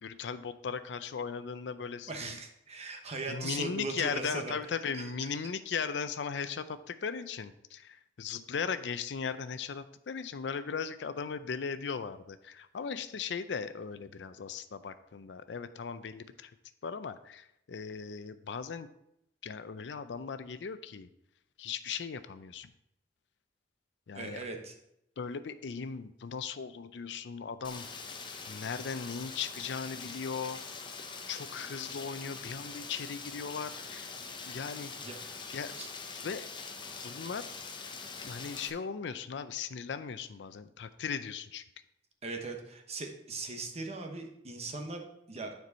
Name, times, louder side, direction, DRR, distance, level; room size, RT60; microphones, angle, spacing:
voice 1, 0.0-2.4 3.3-16.5 16.8-18.9 19.4-21.1 21.6-22.7 24.1-24.4 25.2-27.9 28.5-30.6 31.3-34.1 34.5-34.9 35.5-35.7 36.2-36.4 37.0-37.5 38.2-41.6, left 6 dB, 80° left, 12 dB, 0.5 m, -38 dB
voice 2, 2.1-4.5 4.9-5.3 24.1-24.7 35.0-35.2 35.8-35.9 42.2-45.5, right 3 dB, 40° right, 4 dB, 1.0 m, -39 dB
Rain, 27.6-38.7, left 4 dB, 25° left, 0.7 m, -43 dB
9.3 x 4.6 x 4.1 m, 0.79 s
head